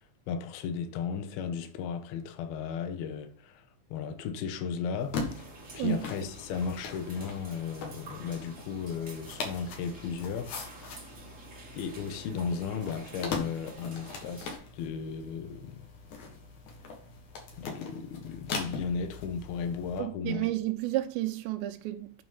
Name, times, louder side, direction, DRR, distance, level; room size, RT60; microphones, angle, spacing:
voice 1, 0.3-3.6 3.9-5.5 5.7-10.5 11.7-15.9 17.6-20.5, left 6 dB, 75° left, 2.6 m, -35 dB
sound 1, 5.0-20.0, left 4 dB, 55° left, 2.7 m, -41 dB
sound 2, 5.3-14.6, right 3 dB, 50° right, 0.9 m, -49 dB
voice 2, 20.0-22.2, right 16 dB, 90° right, 3.1 m, -31 dB
8.9 x 4.7 x 5.5 m
omnidirectional pair, 4.9 m